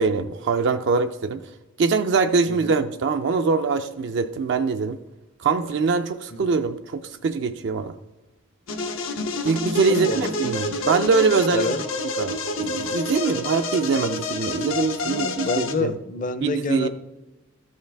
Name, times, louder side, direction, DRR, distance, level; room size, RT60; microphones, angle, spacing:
voice 1, 0.0-1.4 1.8-5.0 5.4-7.9 9.4-11.7 12.2-15.9 16.4-16.9, right 4 dB, 60° right, 7 dB, 0.4 m, -23 dB
voice 2, 2.5-2.8 6.3-6.6 9.9-10.5 11.5-11.8 15.1-16.9, left 3 dB, 40° left, 12 dB, 0.5 m, -28 dB
sound 1, 8.7-15.7, left 2 dB, 90° left, 1.0 m, -28 dB
14.0 x 5.5 x 3.4 m, 1.0 s
head